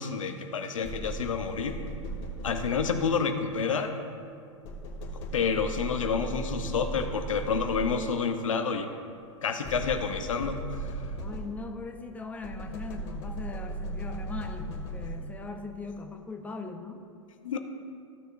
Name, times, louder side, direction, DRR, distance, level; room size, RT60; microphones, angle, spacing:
voice 1, 0.0-1.8 2.4-4.0 5.3-8.9 9.4-10.9 17.4-17.6, left 5 dB, 80° left, 6 dB, 0.9 m, -29 dB
sound 1, 0.8-3.3 4.6-8.2 9.6-11.8 12.4-15.5, right 1 dB, 50° left, 2.1 m, -37 dB
voice 2, 11.2-17.0, left 4 dB, 10° left, 3 dB, 0.8 m, -40 dB
15.5 x 6.6 x 2.6 m, 2.4 s
hypercardioid pair, 110°, 16 cm